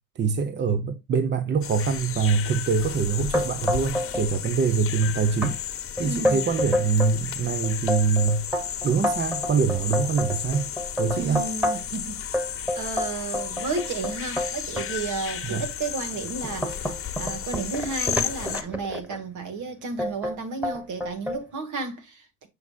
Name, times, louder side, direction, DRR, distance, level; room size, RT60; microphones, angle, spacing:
voice 1, 0.2-5.6 6.0-8.5 8.8-10.7 11.0-11.4 15.4-15.6, right 5 dB, 35° right, 0.8 m, -24 dB
sound 1, 1.6-18.6, left 9 dB, 45° left, 1.0 m, -33 dB
sound 2, 3.3-4.3 4.5-5.1 5.4-5.5 6.0-7.2 7.6-12.0 12.3-14.9 15.5-15.6 16.1-19.2 20.0-20.4 20.6-21.4, left 1 dB, 5° right, 1.5 m, -28 dB
voice 2, 6.0-6.5 11.2-12.2 12.8-22.5, right 4 dB, 70° right, 2.0 m, -33 dB
6.7 x 6.3 x 2.4 m
cardioid pair, 95°, 31 cm